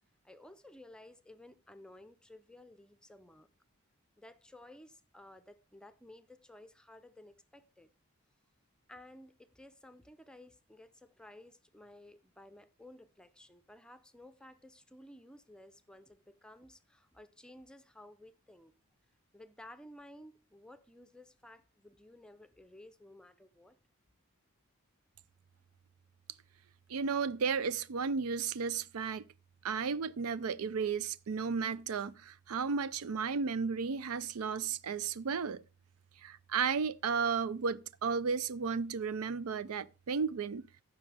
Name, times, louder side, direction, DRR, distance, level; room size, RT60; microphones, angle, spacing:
voice 1, 0.2-3.5 4.2-7.9 8.9-18.7 19.3-23.8, left 1 dB, 5° left, 0.5 m, -55 dB
voice 2, 26.9-29.2 29.6-35.6 36.2-40.7, right 5 dB, 75° right, 0.5 m, -34 dB
15.0 x 6.1 x 3.4 m
head